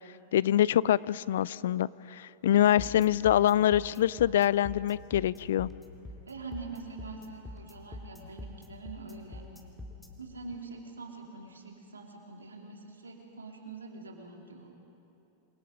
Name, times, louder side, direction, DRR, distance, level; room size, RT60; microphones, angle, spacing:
voice 1, 0.3-5.7, left 11 dB, 65° left, 21 dB, 0.4 m, -25 dB
voice 2, 2.5-2.8 6.3-9.4 10.2-14.7, right 3 dB, 85° right, 1 dB, 3.0 m, -44 dB
sound 1, 2.8-10.1, left 2 dB, 5° left, 2.6 m, -44 dB
27.0 x 22.5 x 5.2 m, 2.8 s
figure-of-eight pair, 95°, 0 cm